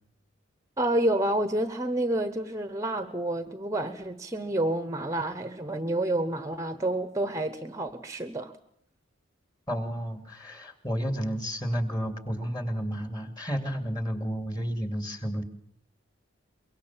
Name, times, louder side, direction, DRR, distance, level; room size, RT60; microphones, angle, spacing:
voice 1, 0.8-8.5, right 1 dB, 15° right, 11 dB, 1.0 m, -29 dB
voice 2, 9.7-15.4, equal, 20° left, 8 dB, 2.6 m, -31 dB
24.0 x 23.5 x 7.4 m, 0.67 s
head